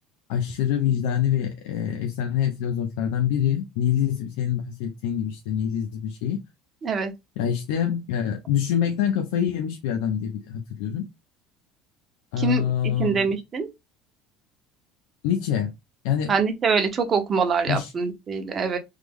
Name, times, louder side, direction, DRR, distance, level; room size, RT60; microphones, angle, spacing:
voice 1, 0.3-6.4 7.4-11.1 12.3-13.3 15.2-15.7 16.0-16.3 17.7-17.9, left 9 dB, 90° left, 0.5 m, -25 dB
voice 2, 6.8-7.1 12.4-12.6 13.0-13.7 16.3-18.8, right 5 dB, 30° right, 0.7 m, -24 dB
3.2 x 2.0 x 3.4 m
cardioid pair, 145°, 0 cm